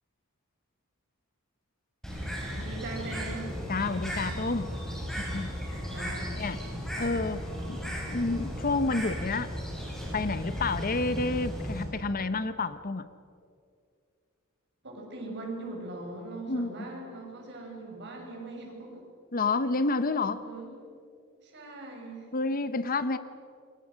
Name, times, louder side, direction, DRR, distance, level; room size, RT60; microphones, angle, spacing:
Bird, 2.0-11.8, equal, ahead, 6.7 m, -35 dB
voice 1, 2.6-3.6 5.9-6.3 14.8-19.0 20.2-20.7 21.4-22.3, right 2 dB, 55° right, 1 dB, 6.5 m, -40 dB
voice 2, 3.7-4.7 5.2-5.8 6.4-6.6 7.0-9.5 10.1-13.1 16.5-16.7 19.3-20.4 22.3-23.2, left 3 dB, 40° left, 13 dB, 0.9 m, -29 dB
28.0 x 24.0 x 6.4 m, 2.4 s
head